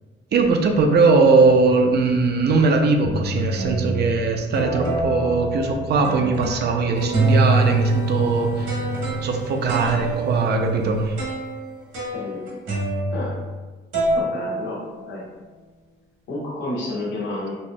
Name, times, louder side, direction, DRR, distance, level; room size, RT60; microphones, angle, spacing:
voice 1, 0.3-8.8 9.2-11.3, right 4 dB, 55° right, 4 dB, 0.5 m, -20 dB
sound 1, 1.6-2.0 2.6-2.7 3.0-4.1 4.5-6.8 7.1-13.7 13.9-15.3, right 2 dB, 85° right, 1.2 m, -25 dB
sound 2, 6.9-11.2, equal, 20° right, 0.7 m, -33 dB
voice 2, 12.1-12.5 13.1-13.4 14.1-15.2 16.3-17.5, left 1 dB, 80° left, -5 dB, 1.2 m, -30 dB
4.2 x 2.8 x 2.2 m, 1.3 s
cardioid pair, 90°, 20 cm